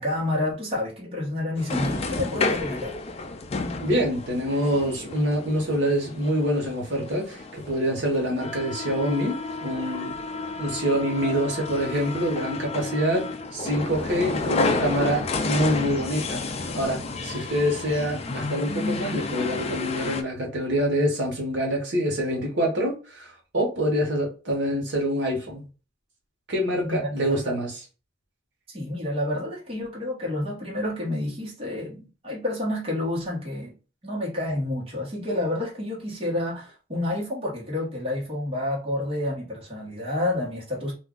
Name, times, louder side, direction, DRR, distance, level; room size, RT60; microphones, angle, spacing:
voice 1, 0.0-3.0 26.8-27.6 28.7-33.7 34.0-40.9, left 1 dB, 30° right, 1.1 m, -29 dB
sound 1, 1.6-20.2, left 3 dB, 35° left, 0.4 m, -31 dB
voice 2, 3.8-7.4 7.7-10.1 10.6-16.4 16.7-23.3 23.5-25.6 26.5-27.7, equal, 65° right, 1.0 m, -26 dB
2.4 x 2.2 x 3.7 m
head